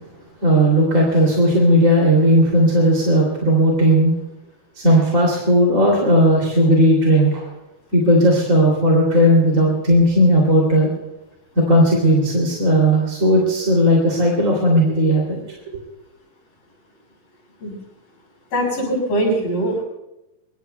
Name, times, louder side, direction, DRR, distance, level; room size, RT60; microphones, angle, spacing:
voice 1, 0.4-4.1 4.7-7.5 7.9-10.9 11.5-15.6, equal, 25° right, -2 dB, 3.0 m, -16 dB
voice 2, 18.5-19.8, right 1 dB, 85° left, -2 dB, 8.2 m, -21 dB
25.0 x 23.5 x 2.3 m, 0.94 s
omnidirectional pair, 3.9 m